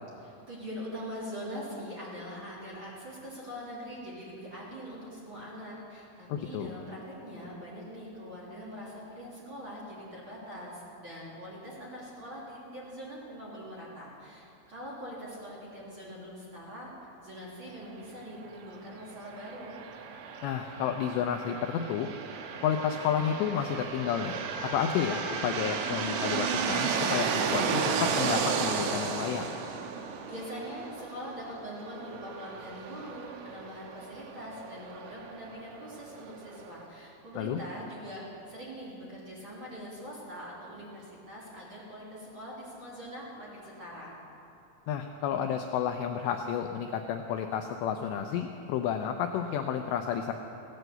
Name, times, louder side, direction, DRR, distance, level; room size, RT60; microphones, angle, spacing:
voice 1, 0.2-16.9 17.2-19.7 30.0-44.1, equal, 30° right, -7 dB, 2.9 m, -43 dB
voice 2, 6.3-6.7 20.4-22.1 22.6-24.4 24.6-29.5 37.4-37.6 44.9-50.3, left 8 dB, 85° left, 5 dB, 2.5 m, -31 dB
sound 1, 19.2-36.8, right 6 dB, 80° right, 3.5 m, -34 dB
16.5 x 11.0 x 7.9 m, 2.8 s
omnidirectional pair, 5.8 m